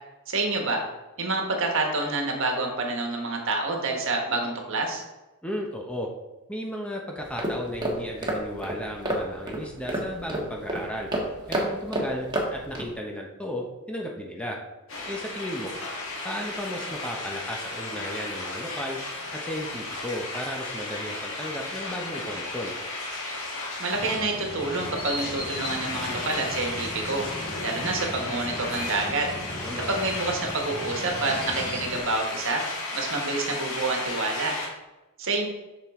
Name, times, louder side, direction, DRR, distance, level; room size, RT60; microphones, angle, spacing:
voice 1, 0.3-0.8 1.2-5.0 23.8-27.2 27.6-29.3 29.9-32.7 32.9-34.6 35.2-35.5, right 3 dB, 60° right, 1 dB, 1.4 m, -28 dB
voice 2, 5.4-6.1 6.5-11.1 11.5-14.6 15.1-15.7 16.2-19.0 19.3-22.7 29.5-29.9, equal, 5° left, 0 dB, 0.8 m, -34 dB
sound 1, 7.2-12.9, right 1 dB, 20° right, 1.3 m, -30 dB
sound 2, 14.9-34.7, left 2 dB, 60° left, 2.1 m, -34 dB
sound 3, 23.9-32.0, left 1 dB, 45° left, 2.4 m, -37 dB
7.4 x 6.0 x 3.7 m, 1.1 s
head